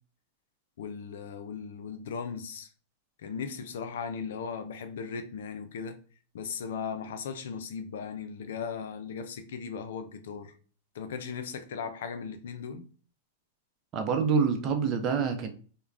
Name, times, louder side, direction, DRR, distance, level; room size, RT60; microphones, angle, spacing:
voice 1, 0.8-2.7 3.2-6.0 6.3-10.5 10.9-12.9, left 6 dB, 75° left, 0.5 m, -37 dB
voice 2, 13.9-15.5, right 6 dB, 35° right, 0.6 m, -26 dB
2.4 x 2.2 x 3.3 m
hypercardioid pair, 115°, 0 cm